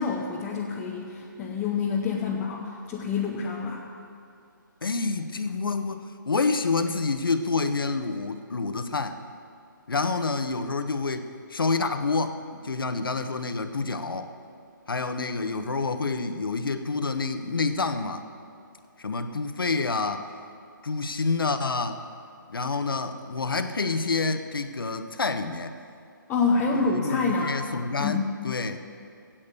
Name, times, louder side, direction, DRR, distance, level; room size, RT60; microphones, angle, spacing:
voice 1, 0.0-3.9 26.3-27.6 28.0-28.2, left 4 dB, 10° left, -4 dB, 0.8 m, -27 dB
voice 2, 4.8-9.2 9.9-14.3 14.9-18.2 19.0-20.3 20.8-22.0 22.5-25.8 26.7-28.8, left 4 dB, 90° left, 8 dB, 1.2 m, -28 dB
16.0 x 8.9 x 8.4 m, 2.4 s
hypercardioid pair, 165°, 11 cm